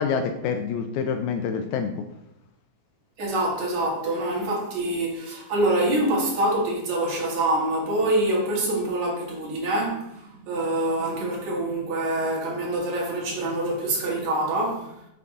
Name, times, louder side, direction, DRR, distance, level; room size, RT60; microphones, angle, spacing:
voice 1, 0.0-2.0, left 6 dB, 80° left, 1.8 m, -27 dB
voice 2, 3.2-14.9, right 1 dB, 65° right, 2.8 m, -25 dB
7.0 x 6.0 x 3.6 m
omnidirectional pair, 3.6 m